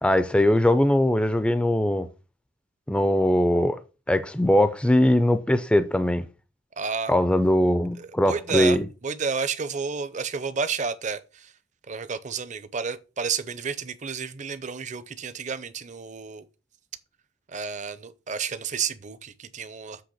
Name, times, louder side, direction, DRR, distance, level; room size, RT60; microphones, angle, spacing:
voice 1, 0.0-2.1 2.9-3.8 4.1-6.3 7.1-8.9, left 1 dB, 5° left, 0.4 m, -21 dB
voice 2, 6.8-7.1 8.0-8.8 9.0-11.5 11.9-16.5 17.5-20.0, right 5 dB, 40° right, 0.6 m, -31 dB
7.7 x 3.4 x 6.4 m
head